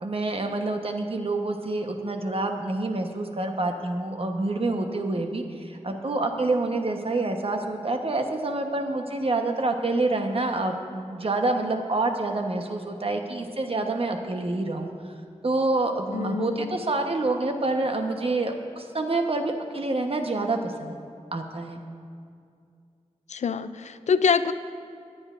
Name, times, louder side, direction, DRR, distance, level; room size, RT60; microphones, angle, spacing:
voice 1, 0.0-14.9 15.4-21.0 21.3-21.8, right 2 dB, 55° right, 4 dB, 1.1 m, -27 dB
voice 2, 16.1-16.8 23.3-24.5, left 6 dB, 80° left, 12 dB, 0.4 m, -25 dB
24.5 x 8.8 x 2.6 m, 2.3 s
cardioid pair, 55°, 12 cm